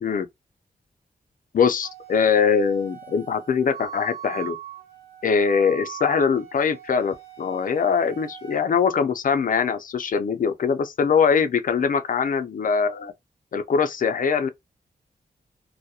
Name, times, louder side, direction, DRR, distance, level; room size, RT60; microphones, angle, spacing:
voice 1, 1.5-4.6 5.2-13.1 13.5-14.5, left 6 dB, 60° left, 0.4 m, -22 dB
Wind instrument woodwind instrument, 1.8-8.7, right 11 dB, 85° right, 0.8 m, -40 dB
2.3 x 2.0 x 2.7 m
wide cardioid pair, 85°, 16 cm